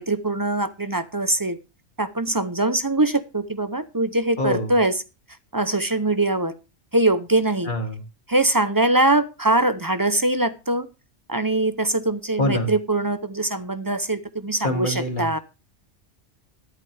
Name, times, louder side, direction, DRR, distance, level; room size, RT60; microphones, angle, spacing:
voice 1, 0.0-1.6 2.0-5.0 5.5-6.5 6.9-7.7 8.3-10.9 11.3-15.4, right 2 dB, 25° right, 12 dB, 0.5 m, -22 dB
voice 2, 4.4-4.7 7.6-8.0 12.4-12.7 14.6-15.4, left 1 dB, 40° left, 3 dB, 2.6 m, -25 dB
13.0 x 11.0 x 3.4 m, 0.31 s
omnidirectional pair, 1.3 m